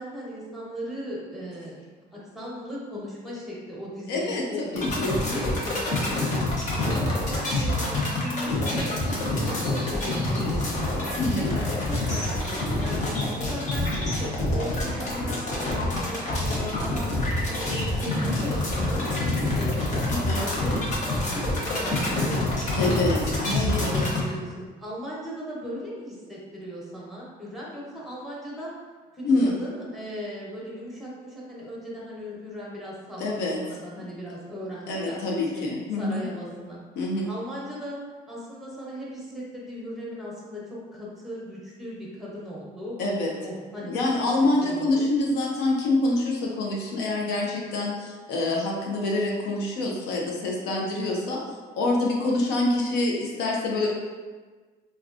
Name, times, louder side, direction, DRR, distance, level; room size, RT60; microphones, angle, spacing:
voice 1, 0.0-1.8 2.1-6.4 6.8-9.0 9.4-11.0 11.3-13.1 13.4-17.1 17.5-20.0 20.4-20.8 21.2-28.7 29.1-33.2 33.5-35.2 35.5-36.8 37.2-38.0 38.3-43.0 43.4-44.3 44.7-45.1, equal, ahead, -5 dB, 0.9 m, -37 dB
voice 2, 4.1-4.4 4.7-5.3 11.1-11.6 20.1-20.4 22.8-24.1 29.2-29.6 33.2-33.6 34.9-36.2 37.0-37.3 43.0-43.3 43.9-51.4 51.8-53.9, left 2 dB, 90° left, -2 dB, 0.6 m, -26 dB
sound 1, 4.7-24.2, left 2 dB, 45° left, 0.8 m, -27 dB
3.4 x 2.3 x 2.4 m, 1.4 s
cardioid pair, 110°, 17 cm